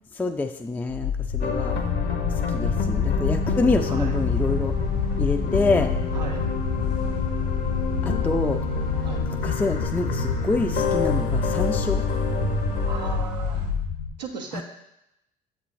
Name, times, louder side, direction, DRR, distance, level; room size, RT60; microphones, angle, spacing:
voice 1, 0.2-1.8 2.5-4.7 5.2-5.9 8.0-8.6 9.4-12.0 14.5-14.6, left 3 dB, 10° left, 5 dB, 0.4 m, -26 dB
sound 1, 0.9-14.1, left 5 dB, 75° left, 1.0 m, -27 dB
sound 2, 1.4-13.2, left 5 dB, 50° left, 0.8 m, -30 dB
sound 3, 4.0-13.7, right 5 dB, 70° right, 1.3 m, -38 dB
voice 2, 6.1-6.4 9.0-9.2 12.9-13.7 14.2-14.6, right 5 dB, 90° right, 2 dB, 0.6 m, -36 dB
7.2 x 3.2 x 4.1 m, 0.86 s
figure-of-eight pair, 50°, 21 cm